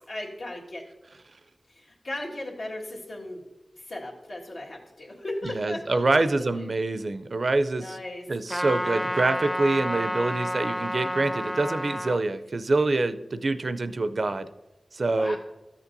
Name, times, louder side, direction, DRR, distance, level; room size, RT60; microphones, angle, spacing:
voice 1, 0.1-0.8 1.7-3.4 3.7-6.7 7.7-8.2 15.1-15.4, left 1 dB, 85° left, -4 dB, 1.7 m, -37 dB
voice 2, 5.4-8.0 8.3-14.5 14.9-15.4, right 2 dB, 65° right, 11 dB, 0.4 m, -26 dB
Trumpet, 8.5-12.2, equal, 10° left, 0.4 m, -30 dB
13.5 x 7.1 x 2.6 m, 1.1 s
wide cardioid pair, 55°, 0 cm